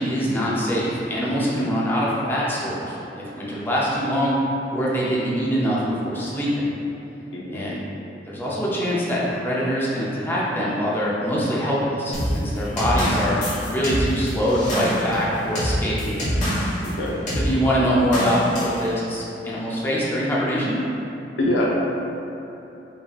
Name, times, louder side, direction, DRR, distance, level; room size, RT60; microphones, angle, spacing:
voice 1, 0.0-4.4 4.7-6.7 7.5-7.8 8.2-13.4 13.7-16.0 17.4-20.8, equal, 10° left, -7 dB, 0.6 m, -23 dB
voice 2, 7.3-7.6 12.7-12.9 16.0-16.3 16.8-17.1 21.4-21.7, left 1 dB, 85° left, -4 dB, 0.7 m, -25 dB
sound 1, 12.1-16.9 17.3-17.5 18.1-18.8, equal, 45° left, 1.4 m, -25 dB
5.3 x 2.7 x 2.4 m, 3.0 s
head